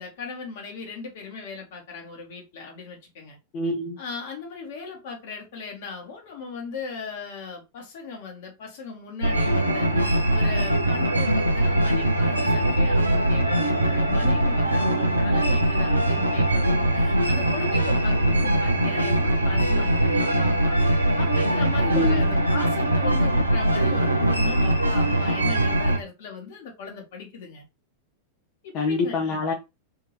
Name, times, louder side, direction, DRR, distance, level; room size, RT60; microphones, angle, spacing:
voice 1, 0.0-3.4 4.0-20.8 21.2-27.6 28.6-29.4, left 5 dB, 55° left, 1.4 m, -38 dB
voice 2, 3.5-4.0 21.9-22.3 28.7-29.5, left 3 dB, 40° left, 0.7 m, -26 dB
sound 1, 9.2-26.0, right 1 dB, 85° right, 0.6 m, -22 dB
3.5 x 2.9 x 3.0 m
figure-of-eight pair, 90°, 0 cm